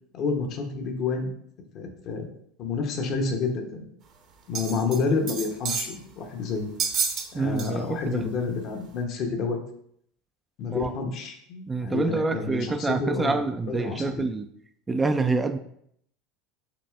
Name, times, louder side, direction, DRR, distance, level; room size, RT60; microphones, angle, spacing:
voice 1, 0.1-1.3 1.7-2.3 2.6-3.9 4.5-6.7 7.3-9.6 10.6-13.4 13.6-14.2, left 4 dB, 50° left, 4 dB, 0.8 m, -29 dB
sound 1, 4.5-5.0 5.3-5.9 6.8-7.3 7.6-7.7 8.3-8.4, right 6 dB, 45° right, 0.8 m, -29 dB
voice 2, 7.3-8.2 10.7-10.9 11.7-14.5 14.9-15.6, right 3 dB, 20° right, 8 dB, 0.3 m, -27 dB
5.9 x 3.1 x 2.4 m, 0.70 s
hypercardioid pair, 85°, 0 cm